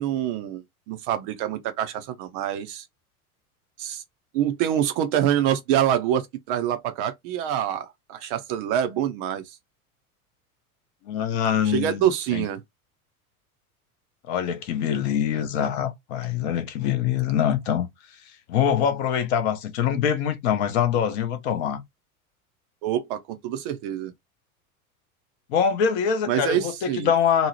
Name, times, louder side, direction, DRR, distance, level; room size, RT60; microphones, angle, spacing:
voice 1, 0.0-2.8 3.8-4.0 4.3-9.6 11.7-12.6 22.8-24.1 26.3-27.1, right 10 dB, 40° right, 0.5 m, -26 dB
voice 2, 11.1-12.5 14.3-17.9 18.5-21.8 25.5-27.5, left 8 dB, 45° left, 0.7 m, -24 dB
2.7 x 2.0 x 2.9 m
figure-of-eight pair, 80°, 44 cm